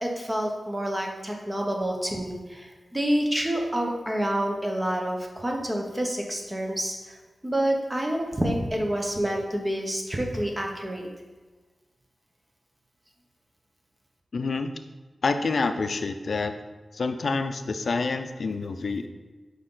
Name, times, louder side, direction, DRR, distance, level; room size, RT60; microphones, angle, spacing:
voice 1, 0.0-7.2 7.4-11.1, right 1 dB, 20° right, 1 dB, 1.1 m, -28 dB
voice 2, 14.3-14.7 15.2-16.5 16.9-19.1, left 4 dB, 70° left, 8 dB, 0.5 m, -27 dB
6.5 x 5.1 x 3.9 m, 1.3 s
wide cardioid pair, 100°, 0 cm